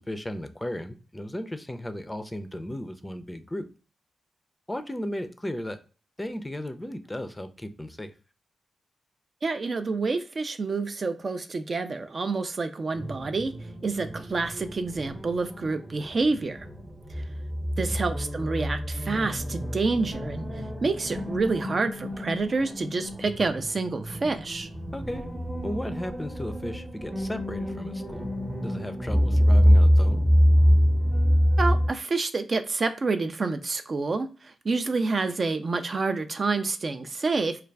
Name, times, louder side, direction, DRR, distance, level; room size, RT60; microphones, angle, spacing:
voice 1, 0.0-3.7 4.7-5.8 6.2-8.1 17.8-18.0 24.9-25.2 25.6-28.3 28.6-30.2, left 1 dB, 15° left, 9 dB, 0.4 m, -35 dB
voice 2, 9.4-13.5 13.8-16.7 17.8-20.4 20.8-24.7 31.6-37.6, right 3 dB, 50° right, 8 dB, 0.3 m, -28 dB
sound 1, 12.9-31.9, equal, 20° right, 0.7 m, -26 dB
2.4 x 2.3 x 3.2 m, 0.37 s
supercardioid pair, 40°, 0 cm